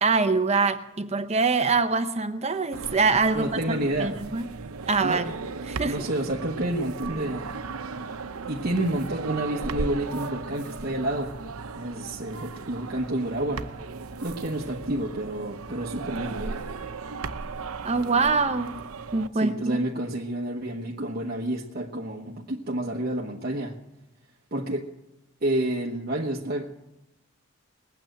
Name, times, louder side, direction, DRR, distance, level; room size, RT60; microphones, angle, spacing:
voice 1, 0.0-3.5 4.0-4.5 4.9-5.3 5.7-6.1 17.8-18.7 19.1-19.8, right 4 dB, 30° right, 9 dB, 0.8 m, -24 dB
sound 1, 2.7-19.3, right 4 dB, 85° right, 0.8 m, -36 dB
voice 2, 3.3-4.2 5.0-5.3 5.8-7.6 8.5-11.4 11.7-13.7 14.2-16.7 19.3-23.8 24.5-24.9 25.4-26.7, right 1 dB, 45° right, -1 dB, 1.2 m, -29 dB
20.5 x 9.0 x 7.8 m, 0.93 s
head